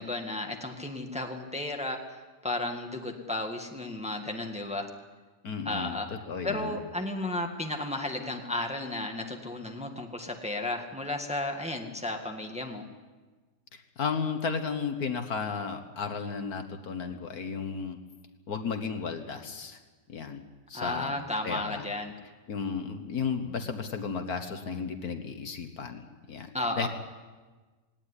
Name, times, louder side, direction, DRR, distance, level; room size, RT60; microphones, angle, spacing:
voice 1, 0.0-4.9 5.6-6.1 6.4-12.8 20.7-22.1 26.5-26.9, left 2 dB, 5° right, 3 dB, 1.7 m, -33 dB
voice 2, 5.4-6.8 13.7-18.0 18.5-19.8 20.1-20.4 20.7-21.1 21.4-21.8 22.5-26.5 26.8-26.9, left 5 dB, 60° left, 7 dB, 1.7 m, -34 dB
18.5 x 18.0 x 9.9 m, 1.3 s
omnidirectional pair, 1.8 m